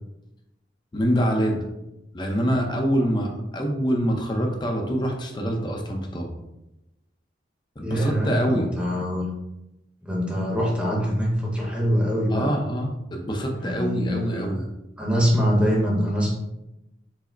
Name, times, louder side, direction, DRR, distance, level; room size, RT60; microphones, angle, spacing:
voice 1, 0.9-1.7 2.1-6.3 7.8-8.7 12.3-14.7, equal, 25° left, 2 dB, 0.5 m, -25 dB
voice 2, 7.8-9.2 10.0-12.5 13.6-14.5 15.0-16.3, equal, 5° right, -3 dB, 0.8 m, -24 dB
4.7 x 2.0 x 4.4 m, 0.92 s
head